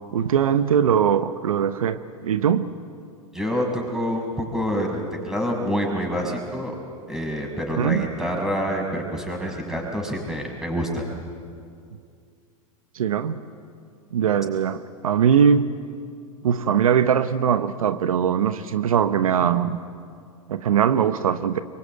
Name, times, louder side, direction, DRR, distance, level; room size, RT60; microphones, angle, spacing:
voice 1, 0.0-2.7 7.8-8.1 12.9-13.4 14.1-15.7 16.4-19.8 20.5-21.6, right 8 dB, 80° right, 11 dB, 1.0 m, -21 dB
voice 2, 3.3-6.7 7.1-11.1, equal, 5° right, 1 dB, 6.3 m, -27 dB
25.5 x 23.0 x 9.1 m, 2.3 s
hypercardioid pair, 100°, 18 cm